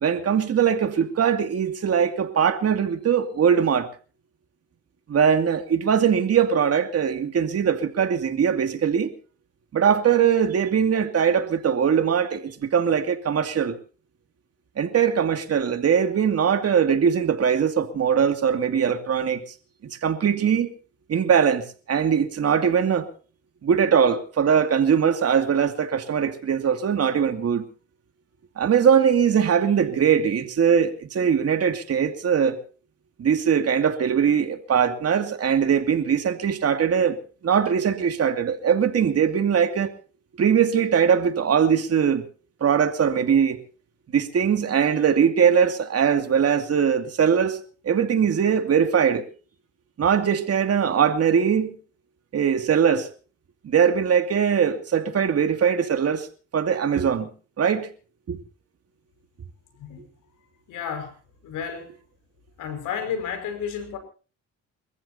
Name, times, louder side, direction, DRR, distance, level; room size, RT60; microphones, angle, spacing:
voice 1, 0.0-3.9 5.1-9.1 9.7-13.7 14.8-19.4 20.0-20.7 21.1-23.1 23.6-27.6 28.6-32.6 33.2-37.2 37.4-39.9 40.4-42.2 42.6-43.6 44.1-47.6 47.8-49.3 50.0-51.8 52.3-53.1 53.6-56.3 56.5-57.3 57.6-57.9 58.3-58.4, right 7 dB, 55° right, 2.5 m, -21 dB
voice 2, 60.7-61.1 61.4-61.9 62.6-64.0, left 7 dB, 90° left, 5.6 m, -31 dB
29.0 x 14.5 x 2.8 m
cardioid pair, 90°, 30 cm